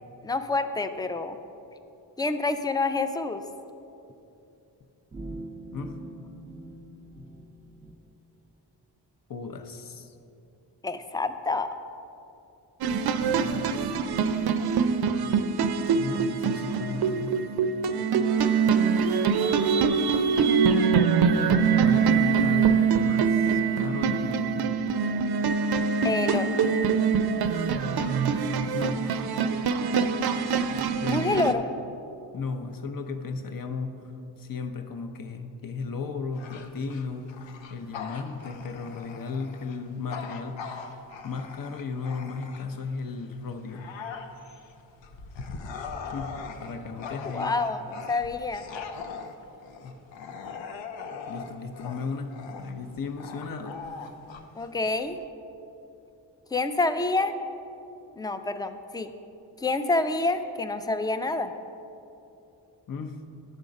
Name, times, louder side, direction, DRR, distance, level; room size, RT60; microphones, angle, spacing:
voice 1, 0.2-1.4 2.2-3.4 10.8-11.7 26.0-26.5 31.1-31.7 47.2-48.7 54.6-55.2 56.5-57.3 58.2-59.1 59.6-61.5, left 3 dB, 10° left, 9 dB, 0.3 m, -27 dB
sound 1, 5.1-8.0, right 2 dB, 20° right, 0.7 m, -42 dB
voice 2, 9.3-10.1 13.2-13.9 15.2-15.4 15.9-17.4 21.8-24.7 28.7-29.3 30.4-31.5 32.3-43.9 45.7-45.8 46.1-46.3 46.6-47.6 49.8-50.0 51.3-54.1 62.9-63.2, left 4 dB, 50° left, 6 dB, 0.7 m, -35 dB
sound 2, 12.8-31.5, right 6 dB, 60° right, 0.5 m, -24 dB
Bark / Growling, 36.3-42.9 43.4-55.2, left 5 dB, 85° left, 0.6 m, -40 dB
10.5 x 3.7 x 5.2 m, 2.8 s
cardioid pair, 60°, 44 cm